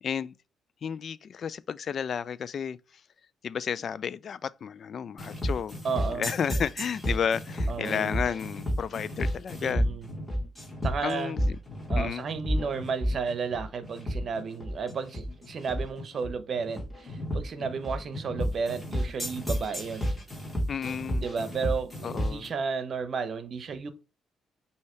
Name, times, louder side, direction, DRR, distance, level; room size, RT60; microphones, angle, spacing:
voice 1, 0.0-0.3 0.8-2.8 3.4-5.7 6.1-9.9 11.0-11.6 12.0-12.3 20.7-21.3 22.0-22.5, left 7 dB, 55° left, 0.3 m, -32 dB
sound 1, 5.2-22.5, equal, 10° left, 2.3 m, -31 dB
voice 2, 5.8-6.3 7.7-8.2 9.6-10.1 10.8-11.4 11.9-20.1 21.2-23.9, right 5 dB, 50° right, 0.8 m, -33 dB
5.5 x 2.8 x 3.2 m
cardioid pair, 90°, 0 cm